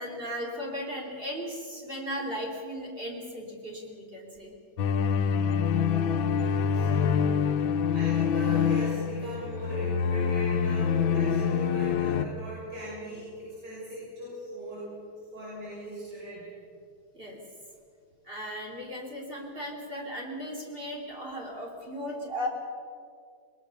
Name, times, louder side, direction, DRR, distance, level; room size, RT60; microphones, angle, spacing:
voice 1, 0.0-4.5 17.1-17.4 18.2-22.5, equal, 25° right, -1 dB, 3.4 m, -36 dB
sound 1, 4.8-12.3, left 7 dB, 75° left, 1.6 m, -26 dB
voice 2, 6.3-14.9 15.3-16.4, equal, 55° right, -8 dB, 7.2 m, -40 dB
21.0 x 20.5 x 7.0 m, 2.4 s
omnidirectional pair, 2.2 m